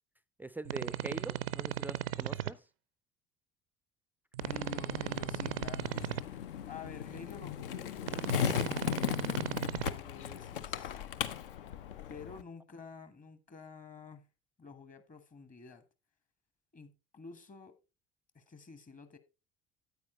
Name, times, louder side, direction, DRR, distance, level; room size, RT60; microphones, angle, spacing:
voice 1, 0.4-2.6, right 2 dB, 5° right, 0.4 m, -43 dB
sound 1, 0.6-2.5 4.3-6.2 8.0-9.9, right 12 dB, 75° right, 0.5 m, -36 dB
Skateboard, 4.4-12.4, left 9 dB, 65° left, 0.6 m, -37 dB
voice 2, 4.4-6.4 6.7-8.0 8.4-11.0 12.1-14.3 14.6-15.8 16.7-17.8 18.3-19.2, left 5 dB, 25° left, 1.2 m, -50 dB
9.3 x 8.8 x 3.1 m
figure-of-eight pair, 60°, 29 cm